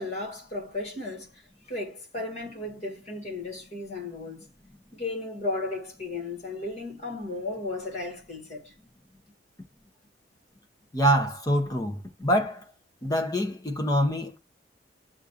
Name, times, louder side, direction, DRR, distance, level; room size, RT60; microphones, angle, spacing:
voice 1, 0.0-4.5 4.9-8.7, left 2 dB, 40° left, 1.7 m, -35 dB
voice 2, 10.9-12.6 13.0-14.4, equal, 20° left, 0.7 m, -25 dB
7.3 x 2.5 x 2.7 m
head